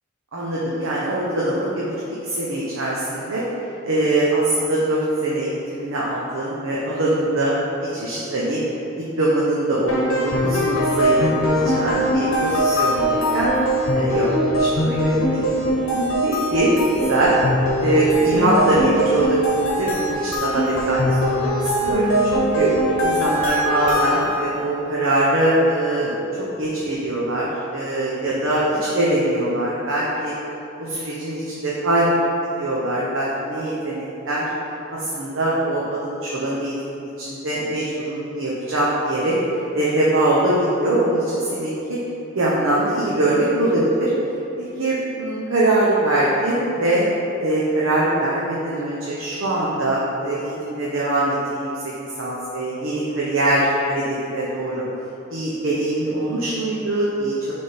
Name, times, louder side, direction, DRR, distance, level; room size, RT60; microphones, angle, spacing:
voice 1, 0.3-1.9 2.2-3.4 3.8-7.6 7.9-8.6 9.2-13.5 13.9-17.3 17.8-19.4 19.7-22.7 23.0-26.1 26.6-30.3 30.8-32.1 32.6-34.5 34.9-39.3 39.7-42.0 42.3-44.1 44.6-47.1 47.4-51.7 52.2-54.0 54.3-54.8 55.3-57.5, right 1 dB, 80° right, -7 dB, 0.9 m, -22 dB
sound 1, 9.9-24.6, equal, 90° left, 0.9 m, -21 dB
6.5 x 3.6 x 4.4 m, 2.9 s
head